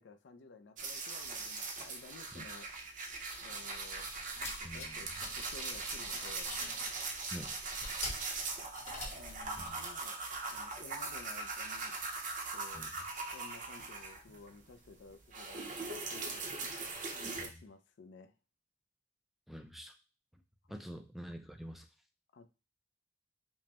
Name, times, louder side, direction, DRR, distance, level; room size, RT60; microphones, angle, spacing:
voice 1, 0.0-2.7 3.4-4.1 4.3-6.5 9.1-10.2 10.4-11.9 12.5-12.9 13.3-16.4 17.1-18.3 22.3-22.5, left 4 dB, 75° left, 10 dB, 0.4 m, -54 dB
sound 1, 0.8-14.5 14.9-17.5, right 3 dB, 45° right, 0.7 m, -41 dB
sound 2, 3.7-9.7, left 2 dB, 40° left, 1.2 m, -47 dB
voice 2, 4.6-5.1 7.3-7.5 9.6-9.8 12.7-12.9 17.4-17.5 19.5-20.0 20.7-21.9, equal, ahead, 5 dB, 0.4 m, -46 dB
5.3 x 2.1 x 2.9 m, 0.32 s
head